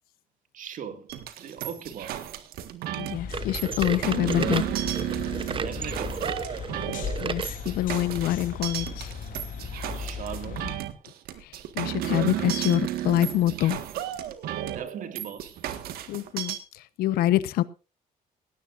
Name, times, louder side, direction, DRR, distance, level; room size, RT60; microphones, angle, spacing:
voice 1, 0.5-2.2 5.5-6.3 9.6-10.7 14.7-15.6, right 8 dB, 60° right, 2.2 m, -39 dB
sound 1, 1.1-16.6, right 12 dB, 80° right, 1.7 m, -33 dB
voice 2, 3.0-4.6 7.2-9.1 11.4-13.8 16.1-17.6, left 13 dB, 90° left, 1.0 m, -26 dB
sound 2, 3.1-10.8, left 6 dB, 65° left, 3.6 m, -37 dB
sound 3, 3.3-7.6 8.1-8.2 8.9-9.0 9.9-10.0, right 6 dB, 35° right, 0.9 m, -34 dB
18.0 x 16.5 x 2.6 m
cardioid pair, 110°, 15 cm